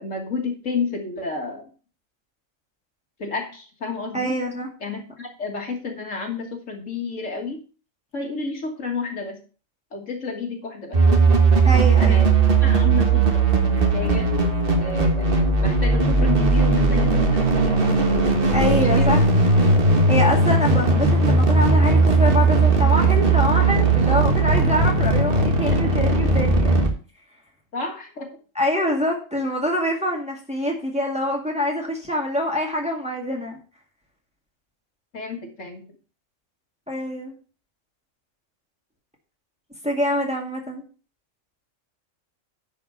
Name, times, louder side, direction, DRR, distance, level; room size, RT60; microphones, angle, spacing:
voice 1, 0.0-1.7 3.2-4.4 4.8-7.6 8.1-9.4 9.9-11.0 12.0-12.3 12.6-14.3 14.8-18.3 18.6-19.2 25.7-26.0 27.7-28.3 35.1-35.8, left 4 dB, 70° left, 2 dB, 2.1 m, -31 dB
voice 2, 4.1-4.7 11.6-12.3 18.5-19.2 20.1-26.9 28.6-33.6 36.9-37.3 39.8-40.8, left 1 dB, 5° right, 0 dB, 2.0 m, -25 dB
sound 1, 10.9-26.9, right 3 dB, 45° right, 1.7 m, -18 dB
10.5 x 4.9 x 5.5 m, 0.37 s
omnidirectional pair, 1.4 m